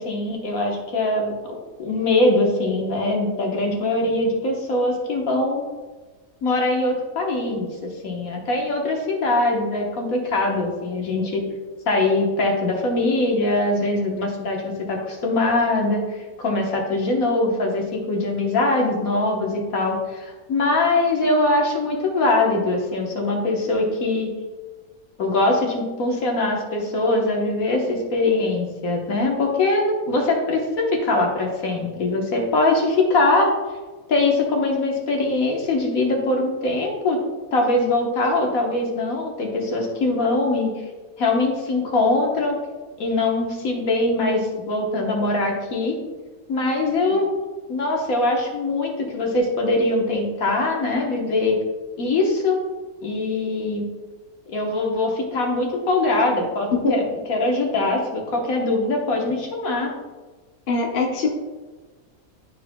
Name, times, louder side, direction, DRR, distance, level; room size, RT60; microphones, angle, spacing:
voice 1, 0.0-5.6 6.4-11.4 11.9-24.3 25.2-33.5 34.1-37.2 37.5-40.7 41.2-42.6 43.0-46.0 46.5-47.3 47.7-51.6 52.0-52.6 53.0-53.9 54.5-59.9, left 2 dB, 65° left, 0 dB, 1.5 m, -22 dB
voice 2, 60.7-61.3, left 2 dB, 40° left, 0 dB, 1.0 m, -22 dB
12.0 x 4.6 x 2.2 m, 1.3 s
omnidirectional pair, 1.6 m